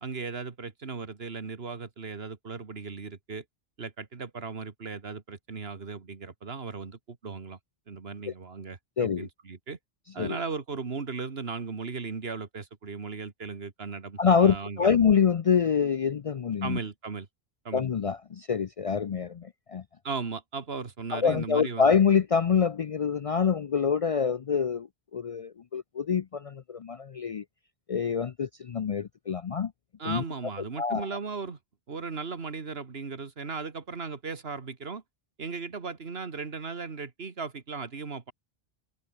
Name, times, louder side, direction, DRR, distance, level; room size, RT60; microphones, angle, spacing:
voice 1, 0.0-3.4 3.8-7.6 7.9-9.8 10.1-15.0 16.6-17.3 17.6-17.9 20.0-21.9 30.0-31.6 31.9-35.0 35.4-38.3, right 4 dB, 75° right, 2.0 m, -37 dB
voice 2, 9.0-9.3 10.2-10.4 14.2-16.8 17.7-19.8 21.1-27.4 27.9-29.7 30.0-30.2 30.8-31.1, left 6 dB, 50° left, 0.4 m, -26 dB
omnidirectional pair, 1.0 m